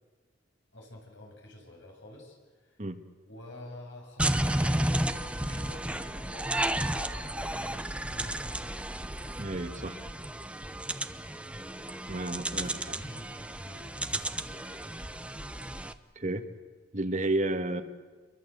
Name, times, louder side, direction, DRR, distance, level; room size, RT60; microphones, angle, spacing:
voice 1, 0.7-2.8 3.3-8.8 12.3-14.9, left 1 dB, 75° left, 1 dB, 7.6 m, -50 dB
sound 1, 4.2-15.9, right 1 dB, 5° right, 0.9 m, -33 dB
voice 2, 9.4-10.0 12.1-13.0 16.2-16.5 16.9-17.8, right 2 dB, 40° right, 7 dB, 1.7 m, -31 dB
30.0 x 23.0 x 8.0 m, 1.4 s
head